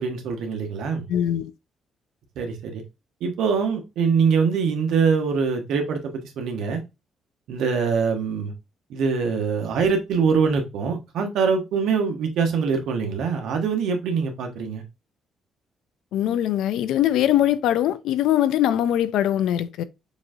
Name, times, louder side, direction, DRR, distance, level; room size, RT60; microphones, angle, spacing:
voice 1, 0.0-1.0 2.4-2.8 3.2-6.8 7.5-8.5 8.9-14.8, right 5 dB, 80° right, 1.1 m, -23 dB
voice 2, 1.1-1.5 16.1-19.8, left 11 dB, 85° left, 0.4 m, -22 dB
6.9 x 2.7 x 2.5 m
cardioid pair, 90°, 0 cm